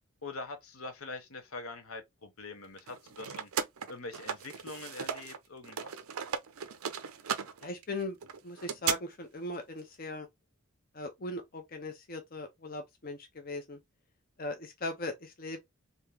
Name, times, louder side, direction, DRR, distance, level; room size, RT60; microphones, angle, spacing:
voice 1, 0.2-3.5 3.9-5.9, left 3 dB, 75° left, 1.0 m, -44 dB
sound 1, 2.8-5.4 5.6-9.0, right 7 dB, 85° right, 0.6 m, -36 dB
voice 2, 7.6-8.2 8.4-10.3 10.9-13.8 14.4-15.6, left 2 dB, 40° left, 0.6 m, -39 dB
3.6 x 2.7 x 3.3 m
head